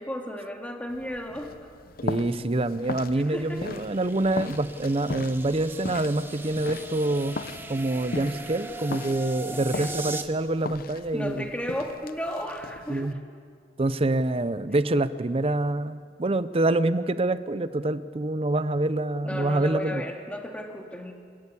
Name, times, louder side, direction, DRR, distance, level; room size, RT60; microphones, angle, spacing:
voice 1, 0.0-1.5 3.2-3.6 9.5-10.0 11.1-13.2 19.2-21.1, equal, 10° left, 2 dB, 2.2 m, -34 dB
sound 1, 0.9-13.1, left 3 dB, 55° left, 0.7 m, -39 dB
voice 2, 2.0-7.4 7.7-11.5 12.9-13.1 13.8-20.0, right 2 dB, 35° right, 14 dB, 0.7 m, -26 dB
sound 2, 2.4-10.2, right 2 dB, 15° right, 1.2 m, -40 dB
28.0 x 13.0 x 8.5 m, 2.1 s
head